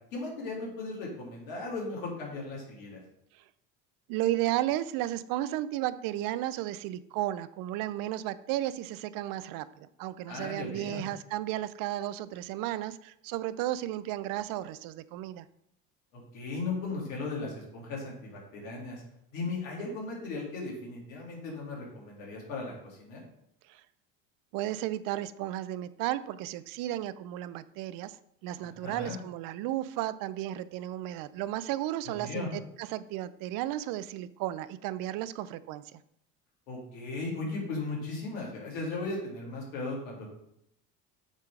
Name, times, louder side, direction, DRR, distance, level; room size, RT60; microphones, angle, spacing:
voice 1, 0.1-3.0 10.3-11.0 16.1-19.0 19.3-23.2 28.8-29.2 32.1-32.5 36.7-40.3, left 3 dB, 80° left, -2 dB, 2.6 m, -37 dB
voice 2, 4.1-15.5 23.7-23.8 24.5-28.2 28.4-36.0, right 14 dB, 55° right, 15 dB, 0.5 m, -34 dB
7.3 x 3.7 x 4.9 m, 0.76 s
hypercardioid pair, 70°, 40 cm